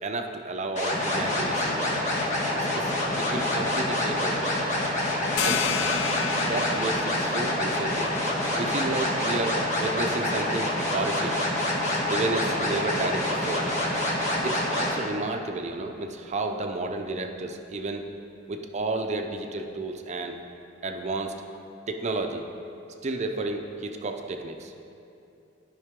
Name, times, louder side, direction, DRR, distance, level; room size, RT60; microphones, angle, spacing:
voice 1, 0.0-2.0 2.5-4.6 5.4-5.6 6.4-8.1 8.6-11.4 12.0-13.7 14.4-18.1 18.5-20.4 20.8-21.3 21.9-22.4 23.0-24.7, right 2 dB, 35° right, 4 dB, 0.6 m, -32 dB
sound 1, 0.8-14.9, left 1 dB, 40° left, 1.5 m, -27 dB
sound 2, 5.4-10.7, left 8 dB, 70° left, 0.4 m, -33 dB
13.0 x 5.6 x 3.7 m, 2.7 s
head